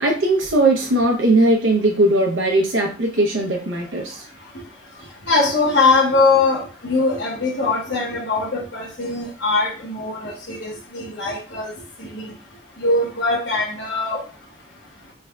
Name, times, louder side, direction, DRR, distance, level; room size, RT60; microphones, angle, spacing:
voice 1, 0.0-4.3, right 1 dB, 90° right, 0 dB, 0.6 m, -19 dB
voice 2, 5.3-11.7 12.0-12.3 12.8-14.2, left 3 dB, 65° left, -3 dB, 1.0 m, -21 dB
3.3 x 2.2 x 3.4 m, 0.35 s
head